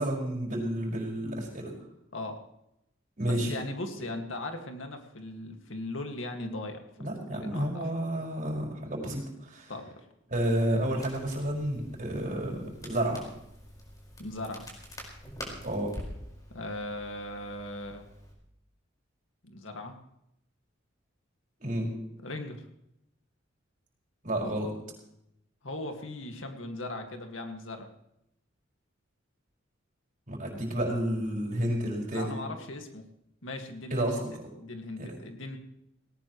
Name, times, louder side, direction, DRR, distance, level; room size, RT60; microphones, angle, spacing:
voice 1, 0.0-1.7 3.2-3.5 7.0-9.7 10.3-13.2 15.6-15.9 21.6-21.9 24.2-24.7 30.3-32.3 33.9-34.5 35.0-35.1, right 1 dB, 45° right, -2 dB, 5.5 m, -30 dB
voice 2, 3.2-6.8 7.3-7.9 9.7-9.9 14.2-14.7 16.5-18.0 19.4-19.9 22.2-22.7 25.6-27.9 32.1-33.0 33.4-34.1 34.6-35.6, left 2 dB, 70° left, 4 dB, 2.1 m, -38 dB
Crackle, 10.3-18.3, equal, 20° left, 5.0 m, -46 dB
18.5 x 18.5 x 3.2 m, 0.81 s
head